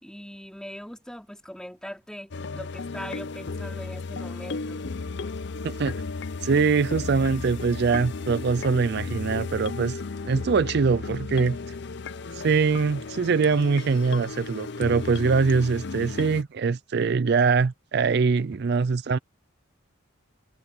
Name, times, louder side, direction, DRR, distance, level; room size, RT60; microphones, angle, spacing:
voice 1, 0.0-4.8 18.5-18.6, equal, 5° left, 3.1 m, -41 dB
sound 1, 2.3-16.4, left 4 dB, 60° left, 0.6 m, -34 dB
voice 2, 5.6-6.0 6.4-11.6 12.3-19.2, right 5 dB, 55° right, 0.4 m, -23 dB
head